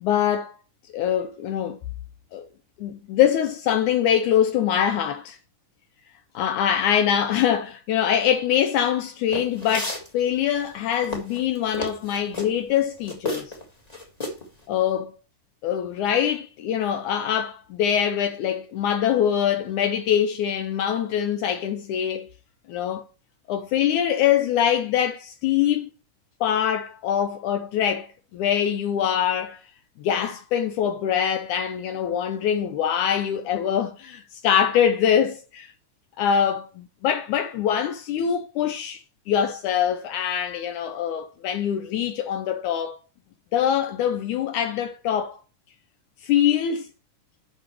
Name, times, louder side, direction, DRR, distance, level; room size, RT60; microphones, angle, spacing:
voice 1, 0.0-0.6 0.9-1.8 2.3-2.4 2.8-5.4 6.3-13.5 14.7-15.1 15.6-22.3 22.7-23.0 23.5-25.9 26.4-29.6 30.0-35.7 36.2-43.0 43.5-45.4 46.2-46.9, left 9 dB, 75° left, 2.1 m, -24 dB
sound 1, 9.3-10.1 10.7-12.5 13.1-13.6 13.9-14.5, left 2 dB, 20° left, 1.2 m, -31 dB
10.0 x 6.3 x 3.1 m
omnidirectional pair, 3.8 m